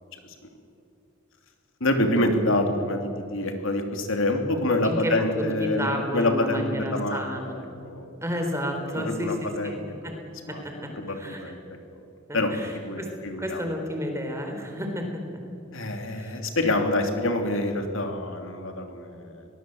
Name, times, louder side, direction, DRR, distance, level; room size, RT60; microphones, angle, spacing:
voice 1, 1.8-5.9 6.1-8.1 8.9-9.8 10.5-10.6 11.0-11.6 12.3-12.5 12.8-13.6 15.7-19.5, left 1 dB, 65° left, 5 dB, 2.9 m, -26 dB
voice 2, 5.4-7.6 8.2-10.2 10.5-10.9 11.1-11.5 12.3-13.1 13.4-15.2 16.1-16.4, equal, 15° right, 3 dB, 4.0 m, -31 dB
23.5 x 19.5 x 7.8 m, 2.6 s
head